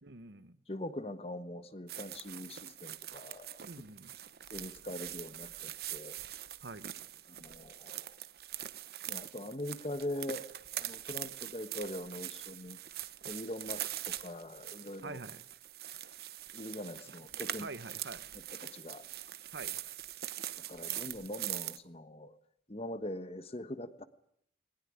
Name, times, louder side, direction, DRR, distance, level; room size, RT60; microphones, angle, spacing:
voice 1, 0.0-0.6 3.7-4.1 6.6-6.9 15.0-15.4 17.6-18.3 19.5-19.8, right 3 dB, 80° right, 14 dB, 1.1 m, -45 dB
voice 2, 0.7-3.6 4.5-6.2 7.3-8.1 9.1-12.8 13.2-15.2 16.5-17.7 18.6-19.0 20.7-22.4 22.7-24.1, left 1 dB, 35° left, 12 dB, 1.3 m, -42 dB
sound 1, 1.9-21.8, right 12 dB, 60° right, 1.0 m, -43 dB
20.0 x 19.0 x 9.9 m, 0.69 s
head